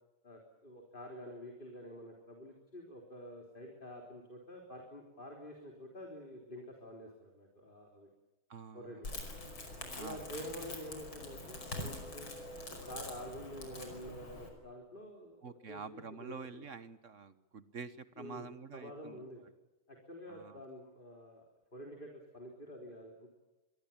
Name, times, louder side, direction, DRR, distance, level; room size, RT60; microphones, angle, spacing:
voice 1, 0.2-8.1 8.7-9.1 10.0-12.3 12.9-16.7 18.2-19.4 19.9-21.4 21.7-23.3, equal, 25° left, 1 dB, 3.9 m, -48 dB
voice 2, 8.5-9.0 9.9-10.3 15.4-19.2 20.3-20.6, right 5 dB, 45° right, 13 dB, 1.2 m, -48 dB
Crackle, 9.0-14.5, left 1 dB, 70° left, 6.2 m, -44 dB
26.0 x 22.0 x 7.3 m, 1.1 s
omnidirectional pair, 2.3 m